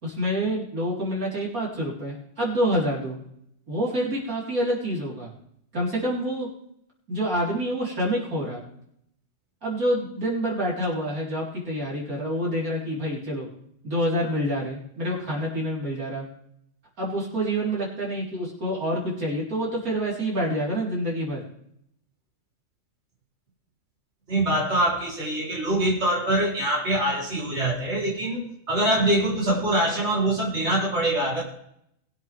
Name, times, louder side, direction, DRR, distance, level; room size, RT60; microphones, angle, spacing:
voice 1, 0.0-3.2 3.7-5.3 5.7-6.5 7.1-8.6 9.6-13.5 13.8-16.2 17.0-21.4, equal, 85° right, -5 dB, 4.9 m, -27 dB
voice 2, 24.3-31.4, right 1 dB, 50° right, -4 dB, 4.1 m, -24 dB
22.5 x 7.9 x 3.5 m, 0.73 s
omnidirectional pair, 1.5 m